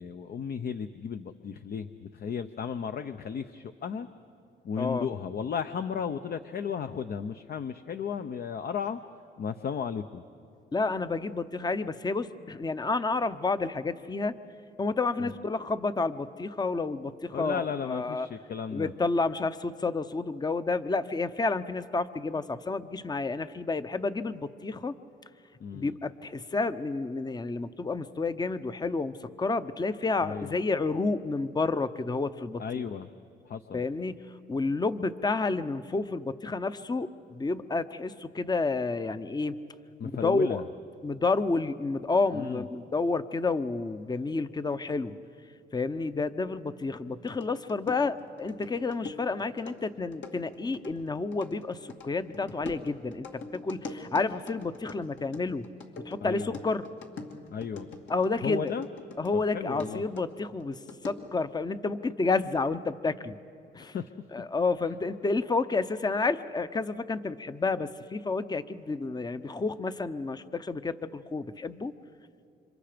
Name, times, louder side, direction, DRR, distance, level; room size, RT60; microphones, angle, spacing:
voice 1, 0.0-4.1 4.6-9.0 9.4-10.2 15.2-15.3 17.3-18.9 25.6-26.0 30.2-30.6 32.6-33.1 33.5-33.8 40.0-40.6 42.3-42.6 56.2-56.6 57.5-57.9 58.4-58.9 59.3-60.0 63.8-64.0, left 7 dB, 50° left, 9 dB, 0.8 m, -34 dB
voice 2, 4.8-5.1 10.7-14.4 14.8-18.3 18.7-24.9 25.7-32.8 33.7-39.5 40.1-40.6 41.0-45.2 45.7-55.7 56.0-56.9 58.1-58.7 59.2-63.3 63.7-64.0 64.3-71.9, left 3 dB, 20° left, 12 dB, 0.8 m, -30 dB
sound 1, 47.3-59.4 59.8-61.4, left 4 dB, 70° left, 2.5 m, -44 dB
30.0 x 26.5 x 5.1 m, 2.4 s
cardioid pair, 90°, 20 cm